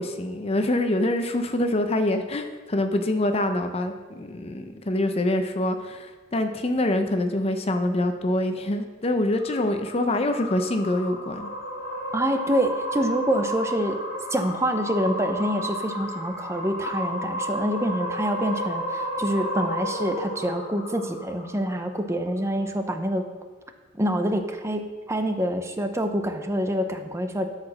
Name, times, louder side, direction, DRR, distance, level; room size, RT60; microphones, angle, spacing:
voice 1, 0.0-11.5, left 1 dB, 30° left, 7 dB, 0.6 m, -25 dB
sound 1, 9.3-21.8, equal, 45° left, 1.8 m, -32 dB
voice 2, 12.1-14.0 14.3-23.3 23.9-27.5, equal, 15° right, 6 dB, 0.6 m, -26 dB
12.5 x 4.9 x 6.2 m, 1.4 s
head